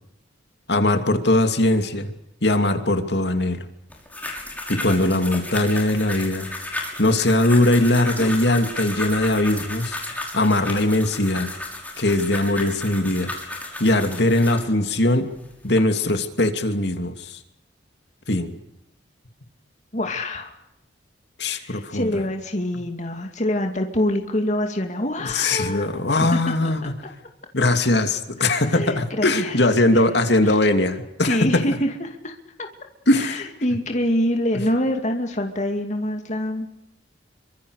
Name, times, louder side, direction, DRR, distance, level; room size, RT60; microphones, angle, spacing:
voice 1, 0.7-2.1 2.4-3.7 4.7-6.5 7.0-10.0 10.3-11.5 12.0-13.3 13.8-15.3 15.6-17.4 18.3-18.5 21.4-22.1 25.2-26.9 27.5-31.8 33.1-33.5, left 1 dB, 60° left, 7 dB, 2.8 m, -20 dB
sound 1, 3.9-14.7 15.3-15.8, left 2 dB, 10° left, 6.4 m, -33 dB
voice 2, 19.9-20.5 21.4-26.4 26.8-26.9 28.4-29.6 29.9-30.0 30.4-30.6 31.2-32.7 33.1-36.7, left 1 dB, 40° left, 4 dB, 2.4 m, -26 dB
28.0 x 25.5 x 6.6 m, 0.85 s
head